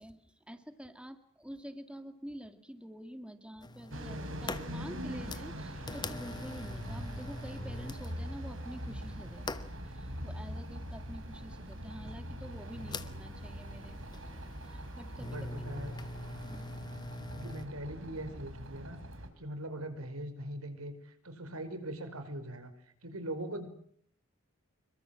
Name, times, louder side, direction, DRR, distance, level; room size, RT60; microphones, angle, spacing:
voice 1, 0.0-14.4 14.6-15.7 16.4-16.7, equal, 5° right, 8 dB, 1.9 m, -48 dB
sound 1, 3.6-17.7, left 2 dB, 20° left, 1.1 m, -44 dB
sound 2, 3.9-19.3, equal, 65° right, 4.7 m, -43 dB
voice 2, 15.2-15.9 17.3-19.0 19.4-22.7 23.0-23.7, right 1 dB, 90° right, 9 dB, 4.9 m, -41 dB
27.0 x 23.5 x 7.6 m, 0.65 s
head